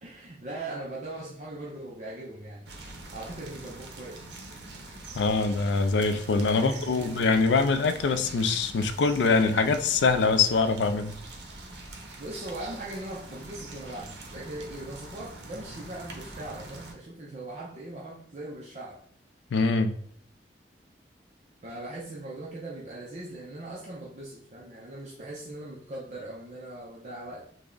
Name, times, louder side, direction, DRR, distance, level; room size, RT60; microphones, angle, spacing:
voice 1, 0.0-2.7 3.1-4.2 6.5-7.2 12.2-19.0 21.6-27.5, right 2 dB, 40° right, -4 dB, 0.5 m, -40 dB
sound 1, 2.7-16.9, right 2 dB, 75° right, 0.7 m, -44 dB
voice 2, 5.2-11.1 19.5-20.0, left 4 dB, 90° left, 9 dB, 0.4 m, -24 dB
3.4 x 2.1 x 3.7 m, 0.62 s
head